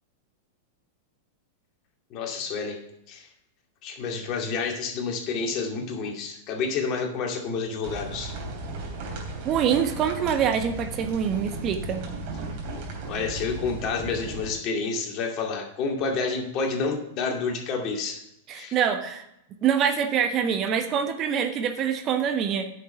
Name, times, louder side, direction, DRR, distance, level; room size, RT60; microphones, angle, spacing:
voice 1, 2.1-2.8 3.1-3.3 3.8-8.3 13.1-18.2 18.5-18.8, left 4 dB, 40° left, 2 dB, 2.3 m, -29 dB
sound 1, 7.8-14.5, right 2 dB, 50° right, 3.2 m, -35 dB
voice 2, 9.4-12.0 18.5-19.2 19.6-22.7, right 8 dB, 35° right, 7 dB, 1.2 m, -25 dB
9.7 x 6.6 x 5.7 m, 0.80 s
hypercardioid pair, 100°, 0 cm